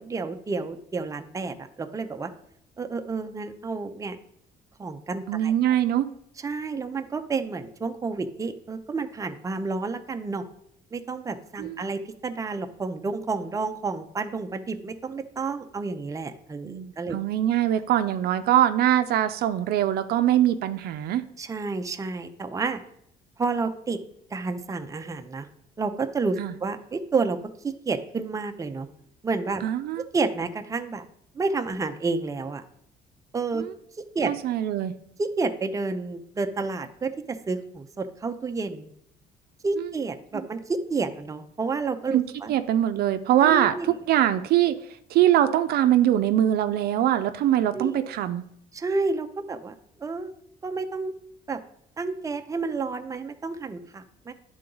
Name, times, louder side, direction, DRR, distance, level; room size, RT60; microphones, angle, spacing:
voice 1, 0.0-2.3 2.8-4.2 4.8-5.8 6.4-10.4 10.9-17.2 21.4-22.8 23.4-24.0 24.3-25.5 25.8-27.4 27.6-28.9 29.2-29.6 30.1-31.0 31.3-32.6 33.3-33.6 34.1-34.3 35.2-38.9 39.6-42.5 43.4-43.9 47.7-47.9 48.7-50.3 50.6-51.1 51.5-51.6 52.0-54.3, right 4 dB, 20° right, 7 dB, 0.6 m, -30 dB
voice 2, 5.3-6.1 11.6-11.8 16.6-21.2 26.4-26.5 29.6-30.0 33.5-33.7 34.3-35.0 39.8-39.9 42.1-42.2 42.5-44.8 45.1-48.4, right 11 dB, 65° right, 10 dB, 0.5 m, -23 dB
10.0 x 3.8 x 3.8 m, 0.72 s
cardioid pair, 110°, 17 cm